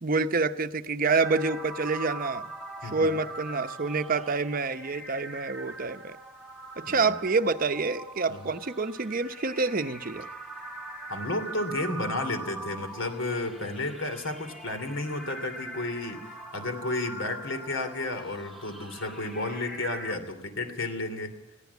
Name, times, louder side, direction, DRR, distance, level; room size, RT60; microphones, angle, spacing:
voice 1, 0.0-2.5 2.9-6.2 6.8-10.3, right 4 dB, 45° right, 10 dB, 0.8 m, -27 dB
sound 1, 1.0-20.2, right 2 dB, ahead, 1.2 m, -42 dB
voice 2, 11.1-16.3 16.5-21.3, left 2 dB, 75° left, 8 dB, 2.9 m, -32 dB
21.0 x 16.0 x 8.4 m, 0.92 s
head